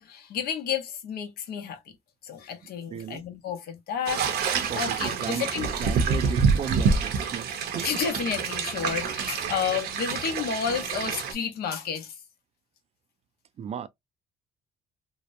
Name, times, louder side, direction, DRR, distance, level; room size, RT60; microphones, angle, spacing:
voice 1, 0.0-1.8 2.2-4.4 4.7-5.7 7.8-12.2, left 7 dB, 65° left, 0.8 m, -31 dB
voice 2, 2.9-3.2 4.7-5.5 5.8-7.5 7.7-7.9 13.6-13.9, right 8 dB, 40° right, 0.4 m, -34 dB
sound 1, 4.1-11.3, right 5 dB, 70° right, 0.7 m, -27 dB
2.8 x 2.1 x 2.5 m
cardioid pair, 110°, 17 cm